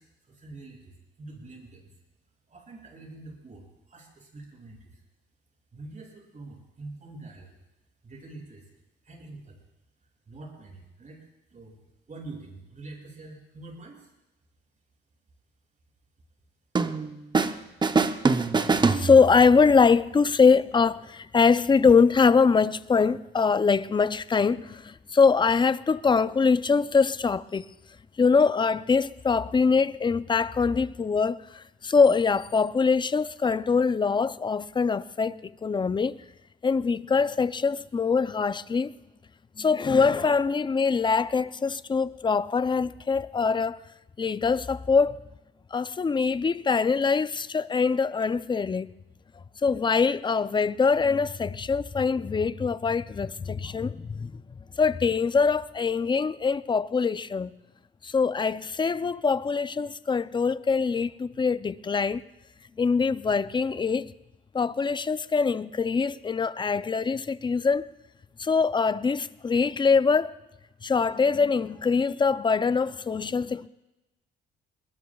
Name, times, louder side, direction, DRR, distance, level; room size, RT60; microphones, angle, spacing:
voice 1, 0.0-1.9 2.5-5.0 5.7-7.6 8.0-8.7 9.0-9.6 10.3-11.2 11.5-11.8 12.1-14.1, right 2 dB, 40° right, 6.5 m, -45 dB
sound 1, 16.7-17.6 17.8-19.6, right 4 dB, 20° right, 0.7 m, -24 dB
voice 2, 18.8-27.7 28.2-36.2 36.6-38.9 39.6-43.8 44.2-45.2 45.7-48.9 49.6-54.4 54.8-57.5 58.0-62.2 62.8-64.1 64.5-67.9 68.4-70.3 70.8-73.7, left 5 dB, 25° left, 0.5 m, -23 dB
22.0 x 20.5 x 2.3 m
cardioid pair, 90°, 20 cm